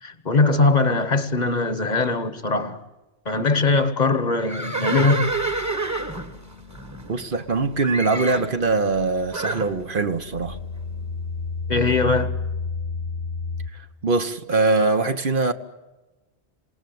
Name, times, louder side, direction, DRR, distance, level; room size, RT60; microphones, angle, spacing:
voice 1, 0.0-2.8 3.2-5.3 11.7-12.4, left 3 dB, 45° left, 1.3 m, -21 dB
Livestock farm animals working animals, 4.4-7.5 7.8-8.5 9.3-9.7, right 3 dB, 15° right, 1.3 m, -28 dB
sound 1, 5.3-13.7, left 4 dB, 90° left, 4.1 m, -33 dB
voice 2, 7.1-10.6 14.0-15.5, right 3 dB, 55° right, 1.2 m, -22 dB
27.5 x 18.5 x 9.4 m
omnidirectional pair, 1.1 m